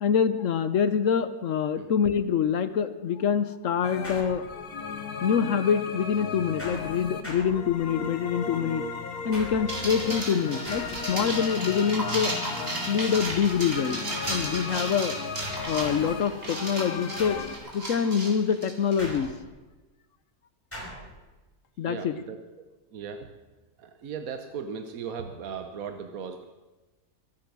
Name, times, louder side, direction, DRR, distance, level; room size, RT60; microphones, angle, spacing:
voice 1, 0.0-4.4 5.2-8.8 9.2-12.4 12.9-14.0 14.3-15.2 15.7-17.4 17.7-19.3 21.8-22.2, left 7 dB, 60° left, 12 dB, 1.1 m, -25 dB
sound 1, 3.8-17.6, left 5 dB, 85° left, 1.8 m, -36 dB
sound 2, 4.0-4.9 6.6-8.1 9.3-9.9 10.7-11.3 13.2-13.7 14.2-14.6 15.4-16.2 17.2-17.6 19.0-19.6 20.7-21.1, equal, 10° left, 5.2 m, -41 dB
sound 3, 9.7-19.2, right 1 dB, 40° right, 3.1 m, -34 dB
voice 2, 21.9-22.6 22.9-23.3 23.8-26.4, right 6 dB, 70° right, 7 dB, 1.4 m, -37 dB
24.0 x 8.9 x 6.1 m, 1.2 s
omnidirectional pair, 1.6 m